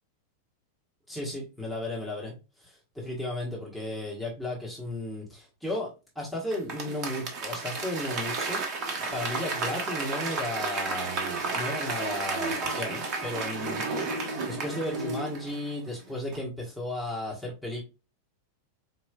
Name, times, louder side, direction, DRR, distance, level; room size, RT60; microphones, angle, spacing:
voice 1, 1.1-5.9 6.1-13.8 14.4-17.8, left 1 dB, ahead, -5 dB, 1.5 m, -34 dB
Applause / Crowd, 6.5-15.9 16.3-16.4, right 3 dB, 35° right, 0.9 m, -32 dB
4.3 x 3.0 x 2.4 m, 0.30 s
figure-of-eight pair, 90°, 0 cm